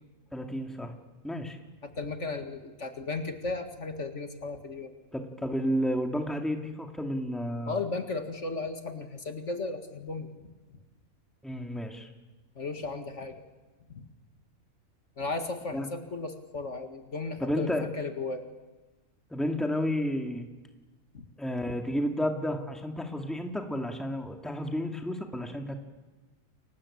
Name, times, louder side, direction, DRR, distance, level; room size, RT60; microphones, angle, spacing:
voice 1, 0.3-0.9 1.2-1.6 5.1-7.8 11.4-12.1 15.7-15.9 17.4-17.9 19.3-20.5 21.4-25.8, equal, ahead, 4 dB, 2.3 m, -31 dB
voice 2, 1.8-4.9 7.7-10.5 12.6-13.4 13.9-14.0 15.2-18.5 21.1-21.3, left 3 dB, 55° left, 6 dB, 2.2 m, -35 dB
30.0 x 23.0 x 8.7 m, 1.2 s
omnidirectional pair, 1.5 m